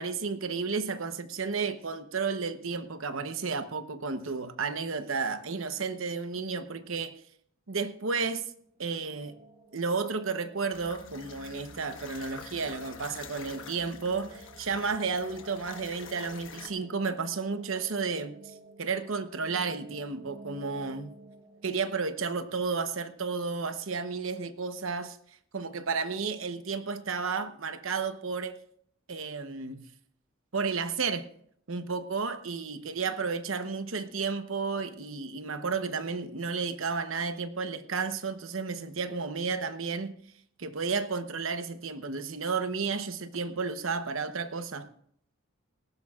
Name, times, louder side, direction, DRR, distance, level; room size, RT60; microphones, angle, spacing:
voice 1, 0.0-7.2 7.7-8.5 8.8-9.3 9.7-21.1 21.6-25.2 25.5-28.6 29.1-29.8 30.5-31.3 31.7-40.1 40.6-44.9, right 4 dB, 80° right, 0.9 m, -32 dB
sound 1, 8.7-23.6, right 1 dB, 35° right, 3.6 m, -53 dB
sound 2, 10.7-16.7, left 5 dB, 70° left, 1.3 m, -47 dB
19.0 x 15.5 x 2.4 m
head